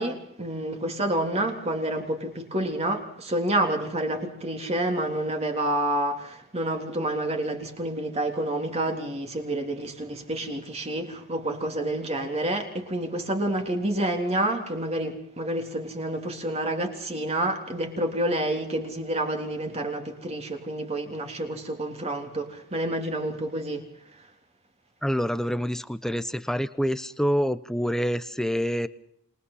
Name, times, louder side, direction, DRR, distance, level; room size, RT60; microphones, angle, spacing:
voice 1, 0.0-23.8, right 1 dB, 30° right, 3.6 m, -29 dB
voice 2, 25.0-28.9, equal, ahead, 0.9 m, -26 dB
28.0 x 21.0 x 5.8 m
head